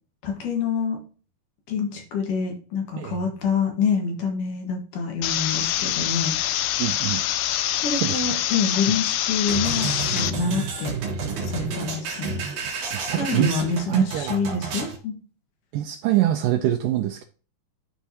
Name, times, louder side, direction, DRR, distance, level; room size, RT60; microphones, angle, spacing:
voice 1, 0.2-1.0 1.7-6.3 7.8-10.9 11.4-12.4 13.2-15.2, left 5 dB, 65° left, 2 dB, 2.7 m, -27 dB
sound 1, 5.2-10.3, left 13 dB, 80° left, 2.1 m, -25 dB
voice 2, 6.8-7.2 8.0-8.2 12.9-13.6 13.9-14.8 15.7-17.2, right 13 dB, 90° right, 6 dB, 1.9 m, -24 dB
sound 2, 9.5-15.0, right 5 dB, 65° right, 3.2 m, -30 dB
12.0 x 4.6 x 2.8 m, 0.38 s
omnidirectional pair, 4.4 m